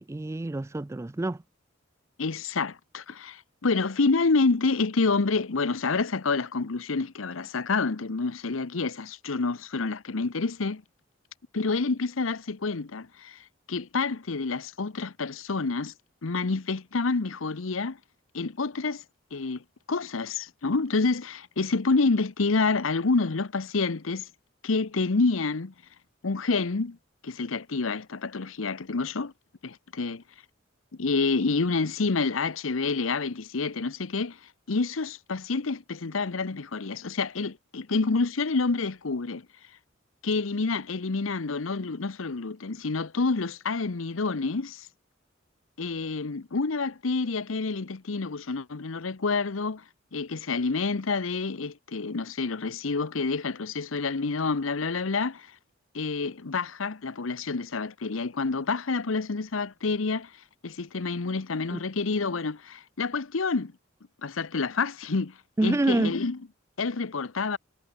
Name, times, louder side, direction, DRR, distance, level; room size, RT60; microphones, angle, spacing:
voice 1, 0.0-1.4 61.7-61.8 65.6-66.1, right 2 dB, 15° right, 0.3 m, -27 dB
voice 2, 2.2-10.8 11.5-15.9 16.2-18.0 18.3-19.0 19.3-24.3 24.6-25.7 26.2-27.0 27.2-29.3 29.6-30.2 30.9-34.4 34.7-39.5 40.2-44.9 45.8-49.8 50.1-55.5 55.9-60.3 60.6-63.7 64.2-66.4 66.8-67.6, left 4 dB, 85° left, 0.9 m, -28 dB
head